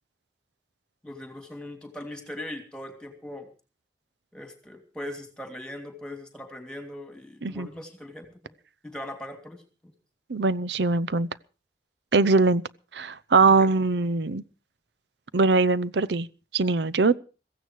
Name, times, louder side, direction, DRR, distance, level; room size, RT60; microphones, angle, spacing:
voice 1, 1.0-3.5 4.3-8.5 8.8-9.9 13.5-13.7, left 1 dB, 5° left, 2.8 m, -40 dB
voice 2, 10.3-11.3 12.1-12.6 12.9-14.4 15.3-16.3 16.5-17.2, right 3 dB, 75° right, 0.7 m, -22 dB
16.0 x 15.0 x 4.7 m
head